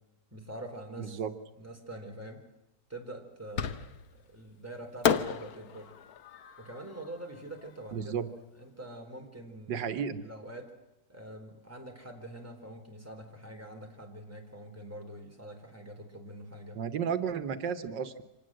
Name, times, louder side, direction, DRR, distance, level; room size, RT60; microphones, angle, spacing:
voice 1, 0.3-1.2 1.6-2.4 2.9-5.9 6.6-8.2 8.6-9.8 10.2-10.7 11.1-16.8, right 1 dB, 10° right, 2 dB, 4.2 m, -45 dB
voice 2, 1.0-1.3 7.9-8.3 9.7-10.2 16.8-18.2, right 7 dB, 80° right, 10 dB, 1.8 m, -33 dB
Fireworks, 3.6-4.2 5.0-8.2, left 8 dB, 60° left, 1.5 m, -33 dB
26.0 x 19.0 x 7.8 m, 0.98 s
omnidirectional pair, 1.9 m